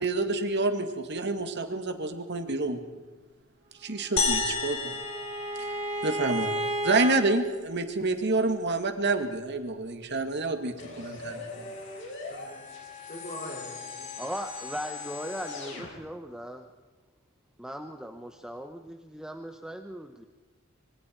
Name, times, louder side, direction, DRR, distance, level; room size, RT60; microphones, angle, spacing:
voice 1, 0.0-2.8 3.8-5.0 5.6-5.7 6.0-6.6 6.8-11.4, right 2 dB, 55° right, 6 dB, 2.1 m, -28 dB
Bowed string instrument, 4.1-7.2, right 1 dB, 30° right, 3.3 m, -33 dB
sound 1, 4.2-6.6, left 4 dB, 80° left, 4.3 m, -31 dB
sound 2, 10.8-15.9, left 4 dB, 60° left, 6.6 m, -40 dB
voice 2, 12.3-14.1, left 1 dB, 40° left, 1 dB, 5.5 m, -43 dB
voice 3, 14.2-16.7 17.6-20.3, equal, 5° right, 5 dB, 1.0 m, -38 dB
26.5 x 23.5 x 4.6 m, 1.3 s
head